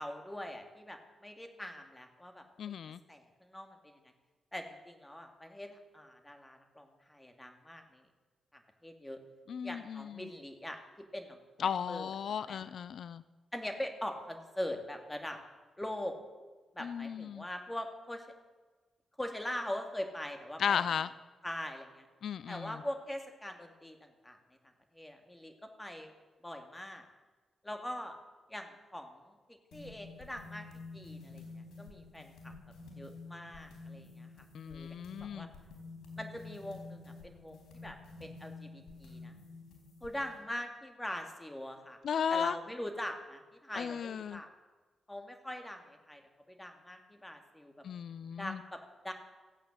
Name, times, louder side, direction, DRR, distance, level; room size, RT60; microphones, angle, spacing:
voice 1, 0.0-2.7 3.1-4.0 4.5-8.1 8.5-9.2 9.6-12.6 13.5-15.4 15.8-16.1 16.7-18.3 19.2-21.1 21.4-22.1 22.5-24.4 24.9-26.1 26.4-27.1 27.6-28.2 28.5-30.7 30.9-32.5 33.0-35.5 36.2-39.4 40.0-42.0 42.3-44.5 45.1-46.2 46.5-47.7 48.4-49.1, left 1 dB, 10° left, 5 dB, 2.3 m, -42 dB
voice 2, 2.6-3.0 9.5-10.2 11.6-13.2 16.8-17.4 20.6-21.1 22.2-22.7 34.5-35.5 42.0-42.5 43.8-44.4 47.8-48.6, left 8 dB, 70° left, 16 dB, 0.4 m, -35 dB
sound 1, 29.7-40.4, left 3 dB, 90° left, 3.9 m, -50 dB
15.0 x 8.9 x 7.8 m, 1.3 s
cardioid pair, 70°, 0 cm